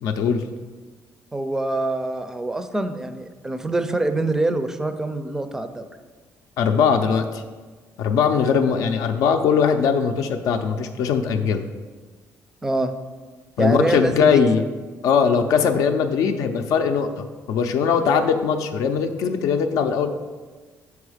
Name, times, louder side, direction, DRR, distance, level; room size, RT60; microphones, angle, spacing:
voice 1, 0.0-0.4 6.6-7.4 8.0-11.6 13.6-14.6 15.0-20.1, left 6 dB, 80° left, 5 dB, 0.5 m, -20 dB
voice 2, 1.3-5.9 12.6-12.9 13.6-14.4, right 2 dB, 10° right, 9 dB, 0.4 m, -25 dB
7.0 x 4.7 x 4.9 m, 1.4 s
cardioid pair, 160°, 6 cm